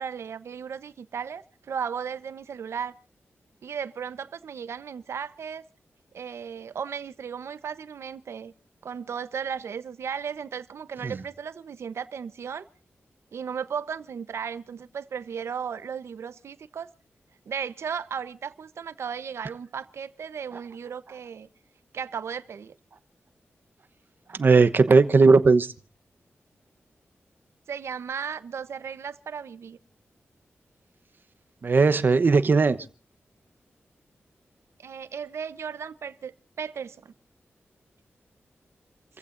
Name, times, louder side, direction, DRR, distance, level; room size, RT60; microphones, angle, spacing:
voice 1, 0.0-2.9 3.6-5.6 6.1-8.5 8.8-12.6 13.3-16.9 17.5-21.5 21.9-22.7 27.7-29.8 34.8-37.1, right 7 dB, 85° right, 1.0 m, -35 dB
voice 2, 24.4-25.7 31.6-32.8, right 4 dB, 50° right, 1.0 m, -18 dB
30.0 x 15.5 x 2.6 m
wide cardioid pair, 120°, 4 cm